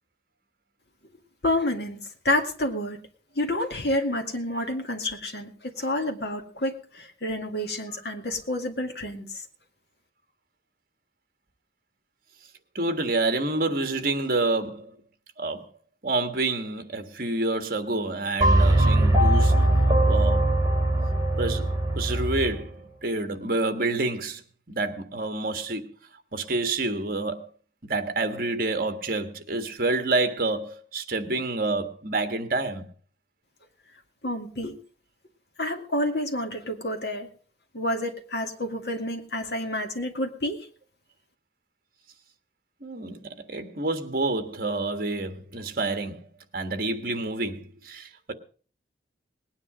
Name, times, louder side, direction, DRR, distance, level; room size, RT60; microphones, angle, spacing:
voice 1, 1.4-2.0 2.2-3.0 3.4-9.4 34.2-34.8 35.6-37.3 37.7-40.7, left 1 dB, 60° left, 2.2 m, -29 dB
voice 2, 12.7-14.9 15.4-15.7 16.0-19.6 20.1-20.5 21.4-22.7 23.0-24.4 24.7-25.8 26.3-27.5 27.8-32.8 42.8-46.3 46.5-48.3, right 2 dB, 50° right, 1.6 m, -28 dB
sound 1, 18.4-22.6, right 1 dB, 20° right, 2.4 m, -21 dB
19.5 x 9.8 x 5.0 m
head